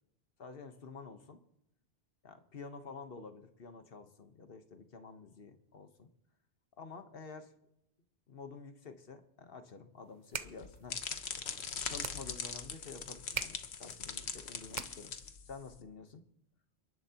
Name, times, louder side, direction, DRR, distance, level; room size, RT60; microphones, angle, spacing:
voice 1, 0.4-1.4 2.2-6.1 6.8-7.5 8.3-11.0 11.9-15.1 15.4-16.2, left 4 dB, 65° left, 8 dB, 1.3 m, -49 dB
sound 1, 10.0-15.3, right 7 dB, 50° right, 0.8 m, -45 dB
sound 2, 10.4-15.8, left 6 dB, 85° left, 1.2 m, -41 dB
29.0 x 11.0 x 2.9 m, 0.80 s
omnidirectional pair, 1.1 m